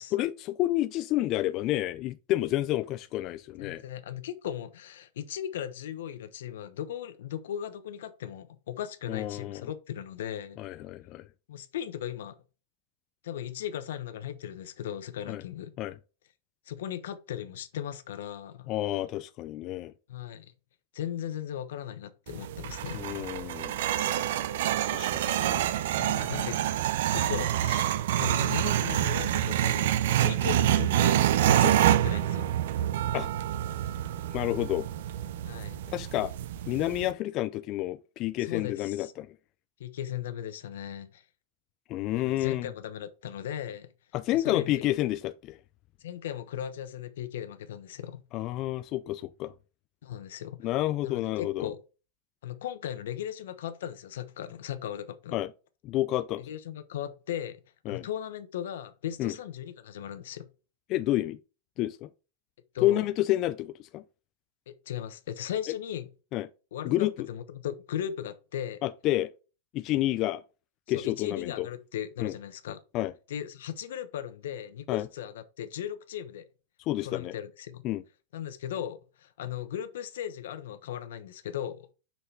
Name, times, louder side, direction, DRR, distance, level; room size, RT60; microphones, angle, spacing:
voice 1, 0.1-3.8 9.1-9.7 10.6-11.2 15.3-15.4 15.8-16.0 18.7-19.9 22.9-23.8 24.9-25.7 26.2-26.3 33.1-33.3 34.3-34.9 35.9-36.3 36.7-39.3 41.9-42.7 44.1-45.6 48.3-49.5 50.6-51.7 55.3-55.5 55.8-56.4 57.9-58.1 59.2-59.3 60.9-61.4 61.8-62.1 62.8-64.0 66.3-66.5 66.8-67.3 68.8-69.3 69.7-70.4 70.9-71.7 72.2-72.3 72.9-73.1 74.9-75.1 76.9-77.4 77.8-78.0, left 15 dB, 40° left, 0.4 m, -29 dB
voice 2, 3.6-10.6 11.5-12.3 13.2-15.7 16.7-18.7 20.1-20.5 20.9-23.0 24.9-25.1 26.0-26.6 27.1-31.2 31.4-32.5 35.4-35.8 38.4-39.1 39.8-41.2 42.2-43.9 44.3-44.9 46.0-48.2 50.0-50.6 51.0-51.8 52.4-55.4 56.4-57.6 57.9-60.5 62.7-63.1 64.7-66.1 66.7-68.8 70.9-72.8 73.3-76.4 77.0-77.8 78.3-81.9, left 10 dB, 80° left, 1.0 m, -37 dB
sound 1, 22.3-37.1, right 12 dB, 70° right, 0.6 m, -27 dB
5.8 x 5.7 x 3.3 m
supercardioid pair, 150°, 0 cm